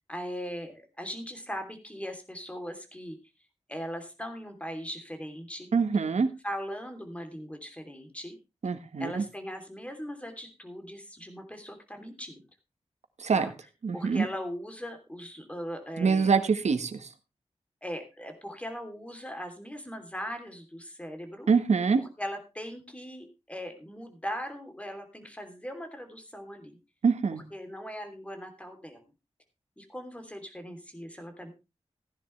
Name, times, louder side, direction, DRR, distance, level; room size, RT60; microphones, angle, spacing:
voice 1, 0.1-3.2 3.7-5.7 6.4-8.4 9.0-12.4 13.3-13.5 13.9-16.3 17.8-21.5 22.2-26.8 27.5-29.1 29.8-31.5, equal, 10° left, 6 dB, 3.1 m, -39 dB
voice 2, 5.7-6.3 8.6-9.2 13.2-13.5 13.8-14.3 16.0-17.1 21.5-22.0 27.0-27.4, right 5 dB, 85° right, 10 dB, 1.4 m, -25 dB
15.5 x 10.5 x 3.2 m, 0.27 s
wide cardioid pair, 95°, 11 cm